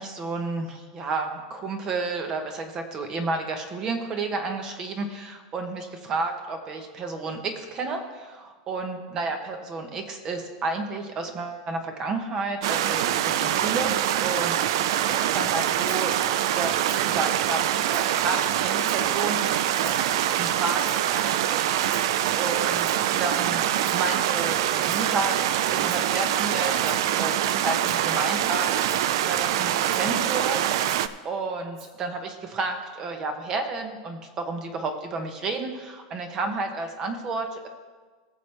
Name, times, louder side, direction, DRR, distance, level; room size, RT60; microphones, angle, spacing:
voice 1, 0.0-13.9 14.2-16.1 16.5-19.9 20.3-22.0 22.4-28.7 29.2-30.9 31.2-37.7, right 3 dB, 25° right, 6 dB, 0.9 m, -31 dB
sound 1, 12.6-31.1, right 11 dB, 60° right, 0.4 m, -24 dB
Rattle (instrument), 15.9-16.1 16.8-17.1 17.5-18.2 18.7-19.1 19.7-20.1 20.8-21.2 21.8-22.2 22.7-23.1 23.7-24.1 24.8-25.1 25.8-26.2 26.7-27.1 27.7-28.1 28.8-29.1 29.8-30.1 30.7-31.2 31.8-31.9, right 4 dB, 45° right, 2.7 m, -44 dB
19.0 x 7.0 x 3.3 m, 1.4 s
supercardioid pair, 170°, 3 cm